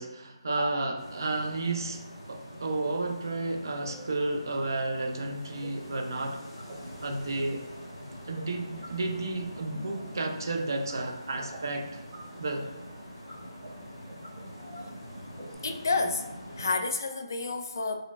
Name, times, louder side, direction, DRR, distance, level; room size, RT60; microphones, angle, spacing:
voice 1, 0.0-6.4 7.0-7.6 8.3-12.0 12.4-12.7, right 2 dB, 45° right, 4 dB, 0.4 m, -32 dB
sound 1, 1.0-16.7, equal, 10° left, 1.2 m, -44 dB
sound 2, 5.3-15.5, right 1 dB, 25° right, 0.9 m, -52 dB
voice 2, 15.6-16.3 16.6-18.0, left 3 dB, 40° left, 6 dB, 0.3 m, -30 dB
3.8 x 3.2 x 2.3 m, 1.1 s
hypercardioid pair, 180°, 3 cm